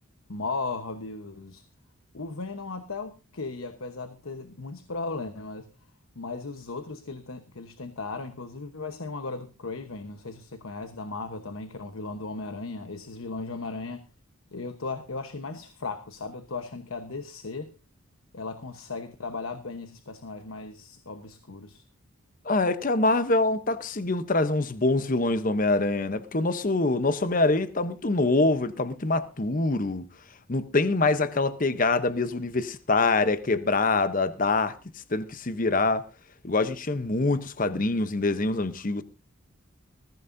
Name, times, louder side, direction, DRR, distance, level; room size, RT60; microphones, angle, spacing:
voice 1, 0.3-1.6 2.1-5.7 6.1-14.1 14.5-17.7 18.3-21.8, left 3 dB, 70° left, 1.1 m, -36 dB
voice 2, 22.4-30.1 30.5-34.8 35.1-36.1 36.4-39.0, left 3 dB, 40° left, 0.8 m, -25 dB
20.5 x 15.0 x 2.7 m
head